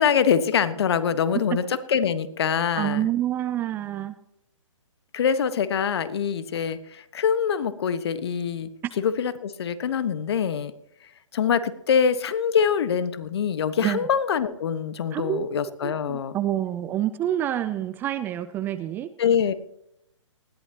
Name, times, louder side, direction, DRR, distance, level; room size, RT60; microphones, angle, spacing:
voice 1, 0.0-3.1 5.1-8.7 9.0-10.7 11.3-16.4 19.2-19.5, left 7 dB, 55° left, 13 dB, 1.3 m, -24 dB
voice 2, 2.8-4.1 13.8-14.0 15.1-15.5 15.8-19.1, right 12 dB, 10° right, 14 dB, 0.4 m, -27 dB
20.0 x 14.5 x 2.9 m, 0.79 s
figure-of-eight pair, 135°, 16 cm